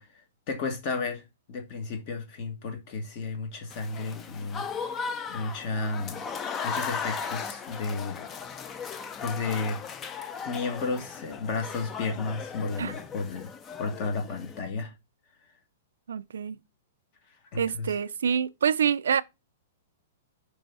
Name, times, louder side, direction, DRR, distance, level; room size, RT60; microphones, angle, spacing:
voice 1, 0.0-4.6 5.3-6.3 6.6-8.3 9.2-9.8 10.1-13.5 13.8-14.9 17.5-17.9, left 3 dB, 40° left, 1.3 m, -33 dB
Applause / Crowd, 3.7-14.6, left 6 dB, 20° left, 0.5 m, -37 dB
voice 2, 16.1-16.6 17.6-19.2, right 7 dB, 90° right, 0.4 m, -26 dB
5.4 x 3.3 x 5.4 m
hypercardioid pair, 155°, 0 cm